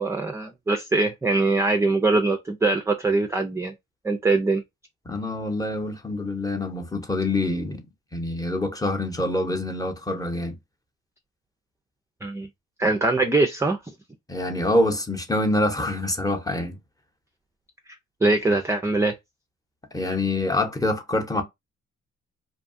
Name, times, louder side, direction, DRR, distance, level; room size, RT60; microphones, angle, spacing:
voice 1, 0.0-3.7 4.0-4.6 12.2-12.5 12.8-13.8 18.2-19.1, right 3 dB, 10° right, 0.4 m, -22 dB
voice 2, 5.1-7.8 8.1-10.5 14.3-16.8 19.9-21.4, left 1 dB, 10° left, 0.8 m, -25 dB
2.7 x 2.3 x 2.5 m
cardioid pair, 90°, 30 cm